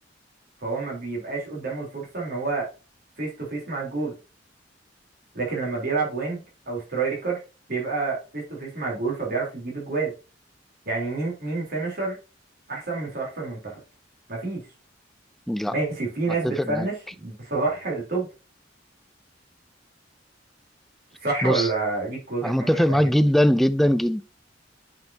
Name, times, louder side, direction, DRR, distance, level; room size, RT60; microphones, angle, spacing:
voice 1, 0.6-2.7 3.2-4.1 5.3-7.4 7.7-10.1 10.9-12.2 12.7-13.8 14.3-14.6 15.7-18.3 21.2-23.1, right 3 dB, 55° right, 3.7 m, -28 dB
voice 2, 16.4-16.9 21.4-21.7 22.4-24.2, equal, ahead, 0.4 m, -21 dB
9.0 x 5.3 x 2.8 m
head